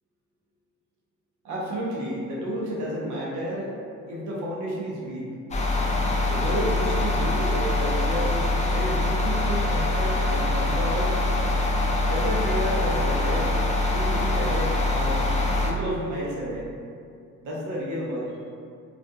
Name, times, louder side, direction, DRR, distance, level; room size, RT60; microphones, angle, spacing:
voice 1, 1.4-3.7 4.1-5.3 6.3-8.4 8.7-11.2 12.1-13.5 13.9-15.2 15.6-16.7 17.4-18.4, equal, 75° right, -5 dB, 0.7 m, -31 dB
sound 1, 5.5-15.7, left 2 dB, 25° left, 0.3 m, -24 dB
2.5 x 2.2 x 2.6 m, 2.3 s
cardioid pair, 90°, 30 cm